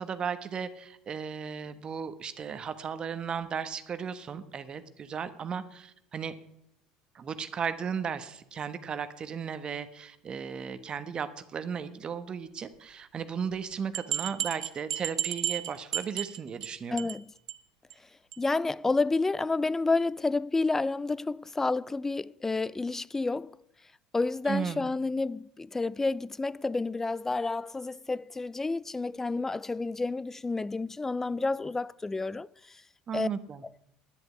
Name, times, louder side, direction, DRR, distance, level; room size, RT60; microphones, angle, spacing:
voice 1, 0.0-6.3 7.1-17.1 24.5-24.9 33.1-33.6, right 6 dB, 35° right, 1.2 m, -35 dB
sound 1, 13.9-16.7 17.0-17.2 17.5-17.6 17.9-18.0 18.3-18.4, right 11 dB, 90° right, 0.6 m, -33 dB
voice 2, 16.9-17.3 18.4-23.6 24.1-32.8 33.1-33.3, left 3 dB, 15° left, 0.4 m, -30 dB
10.5 x 8.0 x 8.1 m
hypercardioid pair, 80°, 2 cm